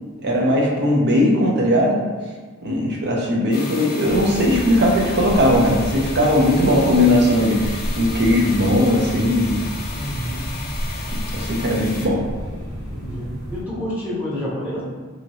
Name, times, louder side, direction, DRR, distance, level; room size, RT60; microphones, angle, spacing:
voice 1, 0.2-2.0 2.6-9.6 11.1-12.2, left 1 dB, 55° right, -1 dB, 0.6 m, -18 dB
sound 1, 3.5-12.1, left 3 dB, 45° left, 0.5 m, -34 dB
sound 2, 4.1-13.6, equal, 70° right, 1.2 m, -31 dB
voice 2, 9.9-10.4 12.9-14.8, equal, 10° right, -9 dB, 0.7 m, -28 dB
2.9 x 2.7 x 2.7 m, 1.4 s
head